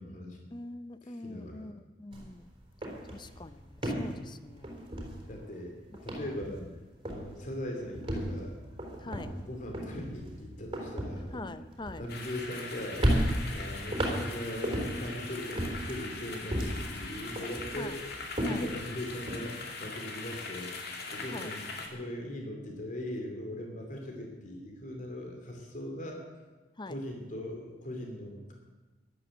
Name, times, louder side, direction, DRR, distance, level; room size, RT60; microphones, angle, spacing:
voice 1, 0.0-0.5 1.0-1.7 5.3-6.6 7.0-8.5 9.0-11.3 12.0-13.0 13.5-18.0 18.5-20.7 21.1-26.2 26.9-28.5, left 1 dB, 45° left, 2 dB, 2.9 m, -40 dB
voice 2, 0.5-2.4 3.1-4.7 9.0-9.3 11.3-12.0 17.8-17.9 18.5-18.7 21.3-21.5 26.8-27.0, left 2 dB, 25° left, 12 dB, 0.6 m, -43 dB
sound 1, 2.1-2.3 2.6-5.6 5.9-6.8 7.0-7.4 7.9-12.6 13.0-15.1 15.5-17.0 17.4-19.4, equal, 30° right, 4.0 m, -34 dB
sound 2, 12.1-21.9, left 3 dB, 60° left, 2.4 m, -41 dB
14.0 x 12.0 x 8.1 m, 1.2 s
head